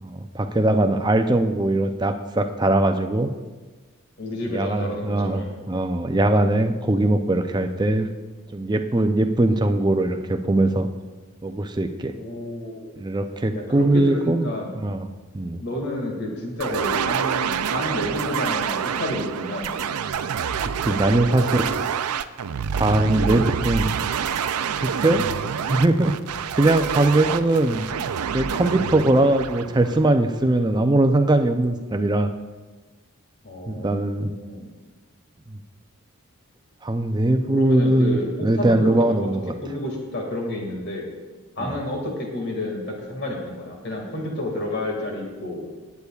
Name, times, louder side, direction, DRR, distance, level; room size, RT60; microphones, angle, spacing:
voice 1, 0.0-3.3 4.5-8.1 8.5-10.9 11.4-12.1 13.0-14.5 14.8-15.1 15.3-15.6 20.9-21.7 22.7-24.0 24.8-25.2 25.7-26.1 26.6-27.9 28.3-32.3 33.7-34.3 35.5-35.6 36.8-39.5 41.6-41.8, right 1 dB, 20° right, 6 dB, 0.5 m, -21 dB
voice 2, 4.2-5.5 12.2-13.0 13.5-14.7 15.6-19.8 33.4-34.7 37.5-39.3 39.6-41.1 41.6-45.6, left 1 dB, 50° left, 0 dB, 2.1 m, -30 dB
sound 1, 16.6-30.5, right 7 dB, 90° right, 0.4 m, -27 dB
18.5 x 8.3 x 2.4 m, 1.3 s
head